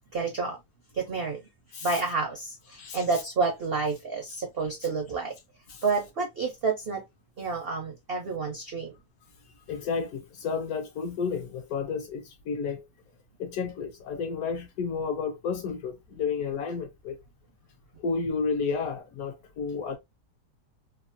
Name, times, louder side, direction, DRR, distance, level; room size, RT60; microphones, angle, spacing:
voice 1, 0.1-0.6 0.9-1.5 1.8-5.4 5.8-7.0 7.4-8.9, right 4 dB, 70° right, 0.5 m, -29 dB
voice 2, 9.7-12.9 13.4-17.2 18.0-20.0, left 5 dB, 70° left, 0.9 m, -31 dB
3.0 x 2.1 x 2.5 m
omnidirectional pair, 1.9 m